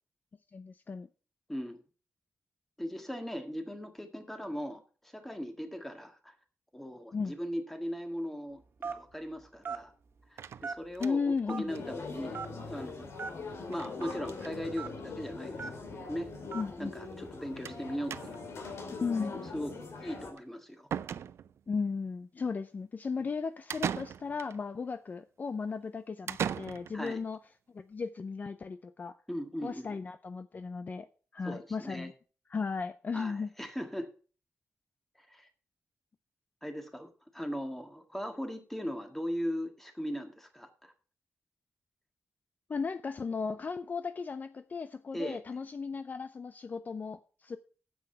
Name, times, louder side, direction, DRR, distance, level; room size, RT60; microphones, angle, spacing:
voice 1, 0.5-1.1 7.1-7.4 11.0-11.7 16.5-16.9 18.9-19.5 21.7-27.4 27.7-29.2 29.6-31.1 31.3-32.1 32.5-33.5 42.7-47.6, left 5 dB, 40° left, 0.5 m, -35 dB
voice 2, 1.5-1.8 2.8-6.3 6.7-9.9 10.3-13.1 13.7-15.7 16.0-16.3 16.8-18.7 19.5-20.9 23.2-23.3 26.9-27.2 29.3-30.0 31.4-32.1 33.1-34.1 35.2-35.5 36.6-40.9 45.1-45.4, equal, 5° left, 1.8 m, -39 dB
Telephone, 8.8-9.1 9.6-9.8 10.6-11.0 11.5-11.6 12.3-12.5 13.2-13.3 14.0-14.1 14.8-14.9 15.6-15.8 16.5-16.7, right 5 dB, 60° right, 1.6 m, -37 dB
sound 1, 10.4-11.4 11.8-11.9 12.1-12.2 12.5-12.6 13.7-14.0 14.2-14.6 15.4-15.5 15.8-15.9 17.7-17.8 18.1-18.6 20.4-20.5 20.9-21.7 23.7-24.6 26.3-27.2, right 8 dB, 85° right, 0.5 m, -38 dB
sound 2, 11.7-20.3, left 4 dB, 90° left, 2.6 m, -42 dB
9.6 x 7.9 x 5.7 m
wide cardioid pair, 125°, 4 cm